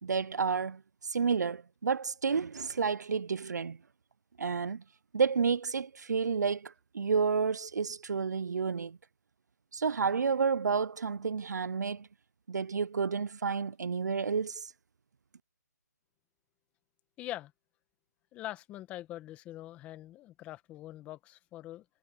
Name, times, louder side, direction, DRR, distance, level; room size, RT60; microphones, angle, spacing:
voice 1, 0.0-3.8 4.4-4.8 5.1-9.0 9.7-12.1 12.5-14.7, right 5 dB, 70° right, 0.7 m, -30 dB
voice 2, 17.2-17.5 18.3-21.8, left 14 dB, 15° left, 1.6 m, -43 dB
hypercardioid pair, 160°, 10 cm